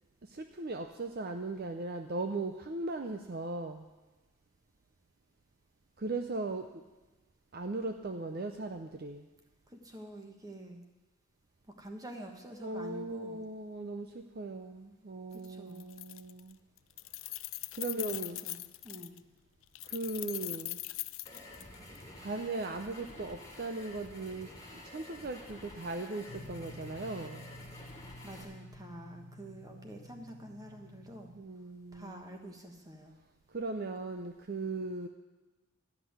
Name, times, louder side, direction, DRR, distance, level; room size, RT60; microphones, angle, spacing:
voice 1, 0.2-3.9 6.0-6.8 7.5-9.3 12.6-16.6 17.3-17.4 17.7-18.4 19.8-20.8 22.2-27.5 31.3-32.4 33.5-35.1, right 3 dB, 45° right, 6 dB, 0.5 m, -38 dB
voice 2, 9.7-10.8 11.8-13.4 15.3-15.8 17.9-19.2 28.2-31.3 31.9-33.2, right 1 dB, 15° right, 3 dB, 1.2 m, -47 dB
Keys jangling, 15.3-15.5 15.8-16.5 16.8-19.2 19.7-22.0, left 19 dB, 60° left, 0.4 m, -40 dB
sound 1, 21.2-28.4, left 1 dB, 15° left, 1.9 m, -50 dB
sound 2, 26.3-31.4, left 1 dB, 75° left, 1.1 m, -51 dB
12.5 x 5.9 x 9.3 m, 1.2 s
head